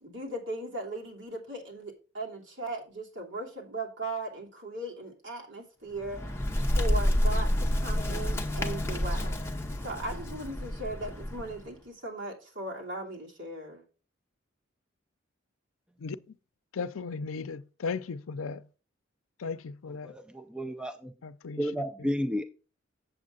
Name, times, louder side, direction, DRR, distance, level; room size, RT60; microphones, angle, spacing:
voice 1, 0.0-6.4 6.7-13.8, right 2 dB, 60° right, 3.0 m, -38 dB
Bird, 5.9-11.7, left 1 dB, 10° left, 0.9 m, -29 dB
voice 2, 16.0-16.4 16.7-18.7 19.4-20.1 21.2-21.7 22.0-22.1, left 4 dB, 85° left, 0.5 m, -36 dB
voice 3, 20.0-21.1 21.6-22.4, equal, 5° right, 0.4 m, -32 dB
7.8 x 7.5 x 3.8 m
head